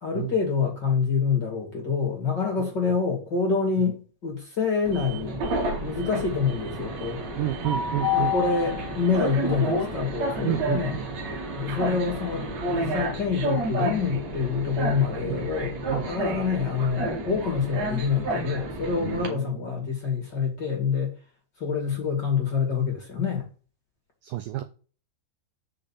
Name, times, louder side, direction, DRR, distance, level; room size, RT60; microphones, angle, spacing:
voice 1, 0.0-5.4 5.8-7.2 8.1-10.9 11.6-21.1 21.6-23.4, left 5 dB, 30° left, 2.3 m, -26 dB
voice 2, 2.6-3.0 3.8-3.9 7.4-8.3 10.4-11.1 15.3-15.5 15.9-16.1 19.0-19.9 24.2-24.6, right 14 dB, 80° right, 2.0 m, -31 dB
Train, 4.9-19.3, equal, 50° right, 2.7 m, -30 dB
6.8 x 5.4 x 7.2 m
omnidirectional pair, 4.9 m